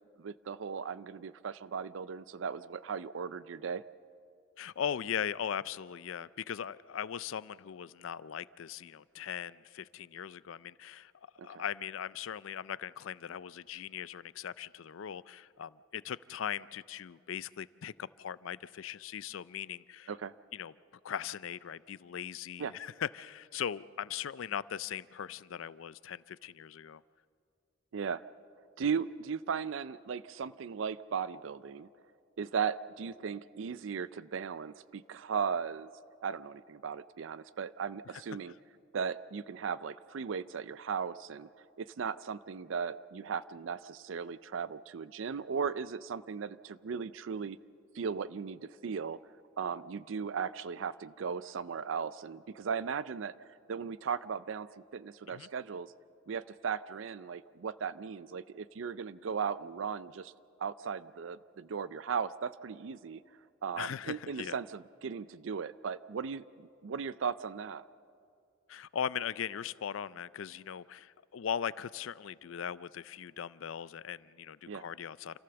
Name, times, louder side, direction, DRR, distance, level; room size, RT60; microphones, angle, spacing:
voice 1, 0.2-3.8 11.4-11.6 20.1-20.3 22.6-22.7 27.9-28.2 28.8-31.9 32.4-35.9 36.2-38.5 38.9-41.5 41.8-47.6 47.9-49.2 49.6-53.3 53.7-54.7 54.9-55.9 56.3-60.3 60.6-63.2 63.6-67.9 74.7-74.8, right 6 dB, 75° right, 16 dB, 0.4 m, -37 dB
voice 2, 4.6-11.1 11.4-20.1 20.5-20.7 21.0-27.0 55.3-55.5 63.8-64.5 68.7-75.4, left 8 dB, 80° left, 19 dB, 0.4 m, -39 dB
28.0 x 15.0 x 6.9 m, 2.4 s
head